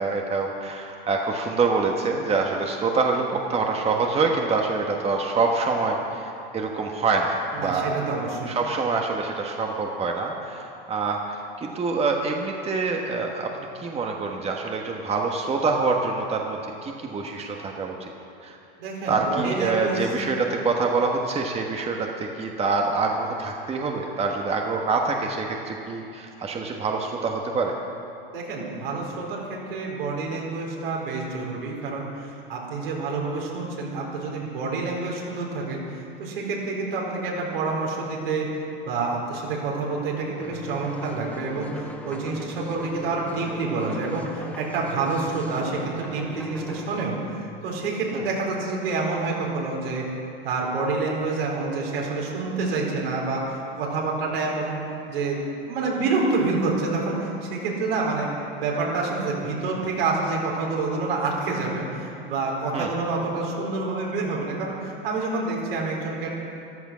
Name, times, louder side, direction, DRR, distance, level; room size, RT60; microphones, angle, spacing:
voice 1, 0.0-8.0 8.5-18.1 18.4-18.6 19.1-27.7 48.1-48.2 62.7-62.9, right 4 dB, 20° right, 1 dB, 1.3 m, -26 dB
voice 2, 7.5-8.5 18.8-20.1 28.3-35.8 36.2-38.5 38.8-47.2 47.6-50.1 50.4-54.8 55.1-55.4 55.7-58.3 58.6-66.3, right 3 dB, 75° right, -2 dB, 4.5 m, -28 dB
sound 1, 40.4-47.1, left 1 dB, 5° left, 1.6 m, -38 dB
14.5 x 12.5 x 6.2 m, 2.7 s
hypercardioid pair, 105°, 29 cm